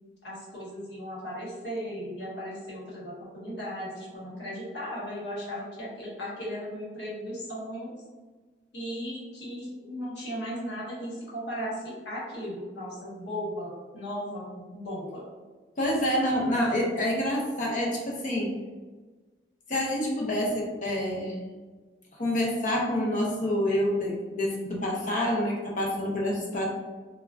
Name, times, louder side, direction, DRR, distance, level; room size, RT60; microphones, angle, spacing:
voice 1, 0.2-7.9 8.7-15.2, equal, 70° left, -6 dB, 1.0 m, -36 dB
voice 2, 15.8-18.6 19.7-21.4 22.2-26.6, left 1 dB, 45° left, -3 dB, 0.6 m, -27 dB
3.3 x 2.2 x 2.3 m, 1.3 s
head